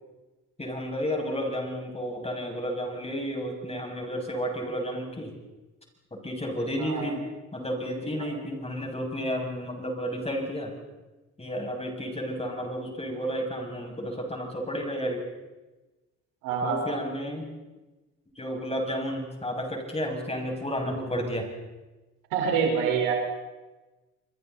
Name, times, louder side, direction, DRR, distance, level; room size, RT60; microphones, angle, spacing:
voice 1, 0.6-5.4 6.1-7.2 7.5-10.7 11.4-15.3 16.6-17.5 18.4-21.5, equal, 20° left, 1 dB, 6.9 m, -32 dB
voice 2, 6.8-7.1 16.4-17.0 22.3-23.1, right 6 dB, 90° right, 1 dB, 4.7 m, -26 dB
28.0 x 22.5 x 4.2 m, 1.1 s
supercardioid pair, 65°, 33 cm